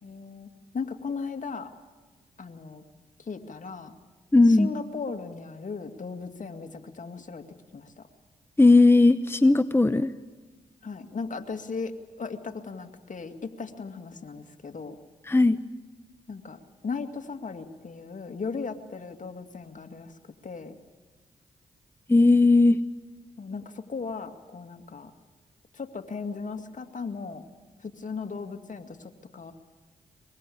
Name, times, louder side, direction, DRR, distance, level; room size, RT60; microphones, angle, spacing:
voice 1, 0.0-1.7 2.4-2.8 3.2-3.9 4.5-7.4 7.7-8.1 10.8-11.9 12.2-15.0 16.3-20.1 20.4-20.8 23.4-25.1 25.7-27.4 27.8-29.5, left 4 dB, 50° left, 6 dB, 2.3 m, -37 dB
voice 2, 4.3-4.7 8.6-10.1 15.3-15.6 22.1-22.8, left 2 dB, 15° left, 11 dB, 0.9 m, -17 dB
23.5 x 22.0 x 8.6 m, 1.4 s
supercardioid pair, 45°, 17 cm